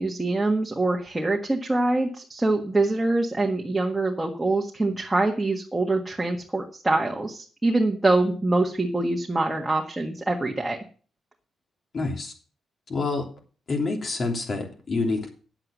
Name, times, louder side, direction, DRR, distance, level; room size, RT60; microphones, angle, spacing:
voice 1, 0.0-10.8, right 2 dB, 10° right, 1 dB, 1.6 m, -24 dB
voice 2, 11.9-12.3 12.9-13.2 13.7-15.3, left 3 dB, 45° left, 3 dB, 3.1 m, -27 dB
9.7 x 7.8 x 6.4 m, 0.40 s
cardioid pair, 100°, 0 cm